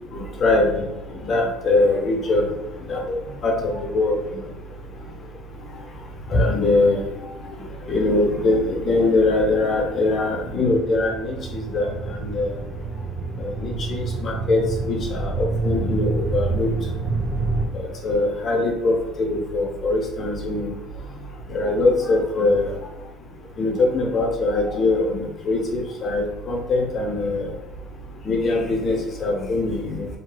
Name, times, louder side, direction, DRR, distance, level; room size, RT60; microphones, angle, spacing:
voice 1, 0.1-0.9 1.2-2.4 2.9-3.2 3.4-4.2 6.3-7.0 7.9-12.6 13.4-16.7 17.7-20.7 21.5-22.7 23.6-27.5 28.2-30.1, left 2 dB, 30° left, 0 dB, 0.6 m, -22 dB
sound 1, 7.3-17.7, right 3 dB, 40° right, 0.4 m, -29 dB
3.1 x 2.7 x 2.2 m, 1.0 s
cardioid pair, 165°, 0 cm